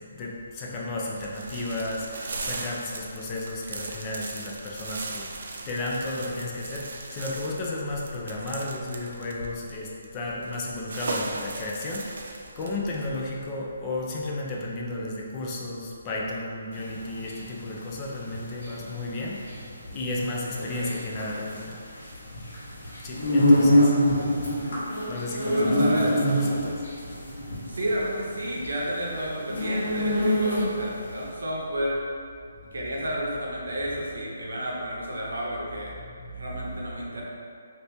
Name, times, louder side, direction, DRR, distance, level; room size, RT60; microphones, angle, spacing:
voice 1, 0.0-21.8 23.0-23.9 24.6-24.7 25.1-26.8 33.9-34.0 36.0-36.8, left 2 dB, 20° left, -3 dB, 0.4 m, -33 dB
sound 1, 1.2-13.4, right 3 dB, 60° right, 0.3 m, -38 dB
sound 2, 16.8-31.0, equal, 65° left, 1.2 m, -25 dB
voice 2, 20.6-21.0 23.4-24.3 25.3-26.4 27.7-32.0 32.7-35.9 36.4-37.2, equal, 75° right, -3 dB, 0.8 m, -31 dB
2.9 x 2.6 x 3.3 m, 2.3 s
hypercardioid pair, 165°, 0 cm